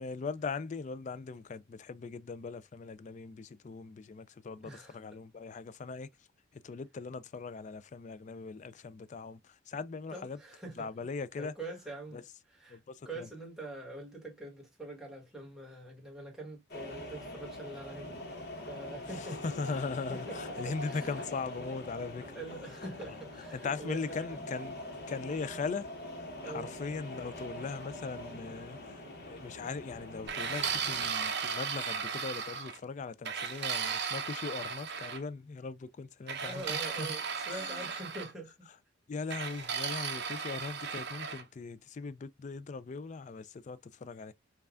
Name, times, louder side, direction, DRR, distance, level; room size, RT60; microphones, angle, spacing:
voice 1, 0.0-6.1 6.6-10.4 10.8-11.5 12.1-12.2 12.7-13.3 19.1-22.3 23.5-24.8 25.1-25.9 26.4-37.1 37.5-37.9 39.1-44.3, left 4 dB, 35° left, 0.3 m, -39 dB
voice 2, 4.6-5.0 10.1-10.9 11.4-12.2 12.5-12.8 13.0-18.2 18.7-19.4 20.1-21.2 22.3-24.4 26.4-26.7 36.4-38.7, right 2 dB, ahead, 1.4 m, -44 dB
sound 1, 16.7-31.1, left 1 dB, 50° left, 1.0 m, -44 dB
sound 2, 30.3-32.8 33.2-35.2 36.3-38.3 39.3-41.4, right 6 dB, 55° right, 0.8 m, -36 dB
5.5 x 2.3 x 2.4 m
head